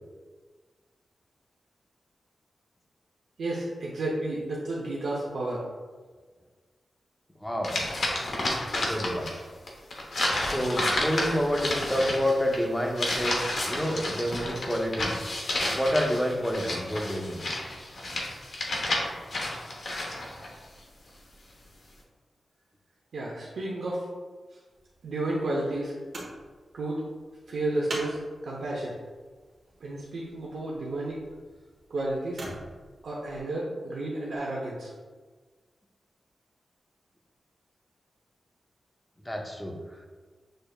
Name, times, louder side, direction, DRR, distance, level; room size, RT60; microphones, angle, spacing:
voice 1, 3.4-5.6 23.1-24.0 25.0-25.9 26.7-27.0 27.5-28.9 29.8-31.2 31.9-32.4 33.0-34.9, right 2 dB, 75° right, -4 dB, 0.7 m, -31 dB
voice 2, 7.4-7.8 8.8-9.3 10.4-15.2 15.7-17.4 39.3-39.8, equal, 5° left, 1 dB, 0.6 m, -28 dB
sound 1, 7.6-9.4 9.7-20.5, left 1 dB, 55° left, 0.9 m, -31 dB
sound 2, 24.7-33.4 34.3-34.4, right 1 dB, 55° right, 1.1 m, -45 dB
6.5 x 3.3 x 2.3 m, 1.4 s
wide cardioid pair, 160°, 0 cm